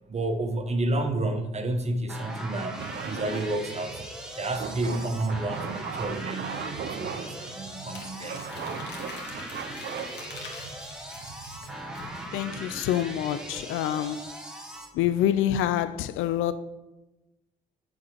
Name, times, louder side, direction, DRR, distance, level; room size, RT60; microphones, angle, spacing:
voice 1, 0.1-4.0 4.4-6.6 6.9-8.4, right 2 dB, 35° right, 1.0 m, -30 dB
sound 1, 2.1-14.9, right 1 dB, 5° right, 1.4 m, -40 dB
sound 2, 2.8-13.8, right 6 dB, 60° right, 0.9 m, -39 dB
Crumpling crinkling, 7.9-12.5, left 3 dB, 60° left, 2.3 m, -45 dB
voice 2, 12.3-14.3 14.9-16.5, left 11 dB, 90° left, 0.4 m, -26 dB
7.2 x 5.2 x 6.3 m
cardioid pair, 90°, 20 cm